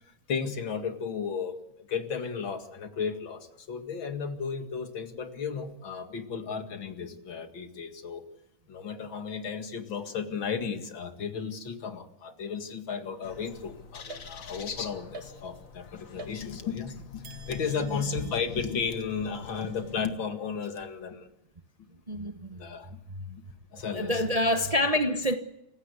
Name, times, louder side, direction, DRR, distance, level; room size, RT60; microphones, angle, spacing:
voice 1, 0.3-8.2 8.7-21.3 22.6-23.0 23.7-24.2, left 6 dB, 75° left, 2.8 m, -34 dB
sound 1, 13.2-20.0, left 6 dB, 45° left, 1.7 m, -45 dB
sound 2, 14.1-14.7 15.1-15.8 16.2-16.8 17.2-20.7, right 4 dB, 85° right, 2.4 m, -50 dB
voice 2, 22.1-22.6 23.1-23.4 23.9-25.3, left 1 dB, 25° right, 0.9 m, -27 dB
28.0 x 16.0 x 8.3 m
omnidirectional pair, 2.2 m